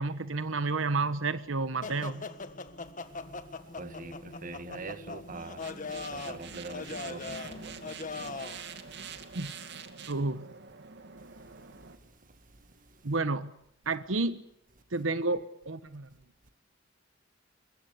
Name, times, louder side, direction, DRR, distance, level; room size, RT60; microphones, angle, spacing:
voice 1, 0.0-2.3 9.3-9.5 10.1-10.4 13.0-13.5 13.9-14.4 14.9-16.1, right 3 dB, 85° right, 1.2 m, -30 dB
sound 1, 1.8-8.6, left 3 dB, 40° left, 1.6 m, -40 dB
voice 2, 3.8-5.6 6.1-7.8, right 3 dB, 45° right, 1.6 m, -43 dB
sound 2, 5.4-12.0, right 6 dB, 60° right, 2.4 m, -46 dB
23.5 x 22.0 x 8.6 m
head